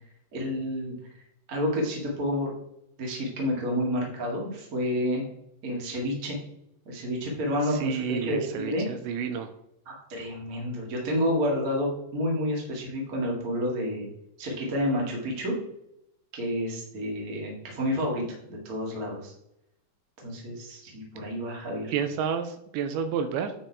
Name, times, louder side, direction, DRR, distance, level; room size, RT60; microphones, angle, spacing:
voice 1, 0.3-0.9 1.5-2.5 3.0-5.2 5.6-6.4 6.8-8.8 9.8-14.1 14.4-15.6 16.3-19.3 20.2-22.0, equal, 55° right, -2 dB, 0.9 m, -29 dB
voice 2, 7.7-9.5 21.9-23.5, right 7 dB, 85° right, 8 dB, 2.7 m, -30 dB
9.3 x 4.7 x 4.7 m, 0.81 s
omnidirectional pair, 5.4 m